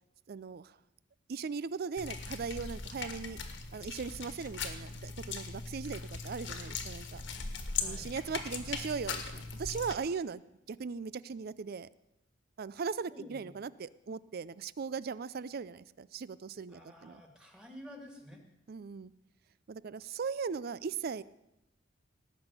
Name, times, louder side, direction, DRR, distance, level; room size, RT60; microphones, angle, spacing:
voice 1, 0.3-0.8 1.3-3.4 3.7-7.2 7.8-10.4 10.7-11.9 12.6-17.2 18.7-19.1 19.7-21.2, right 5 dB, 50° right, 18 dB, 0.4 m, -38 dB
sound 1, 2.0-9.9, left 5 dB, 65° left, 1.5 m, -40 dB
voice 2, 7.7-8.1 13.1-13.6 16.7-18.4, equal, 5° right, 2 dB, 2.2 m, -51 dB
18.0 x 6.2 x 8.1 m, 0.91 s
head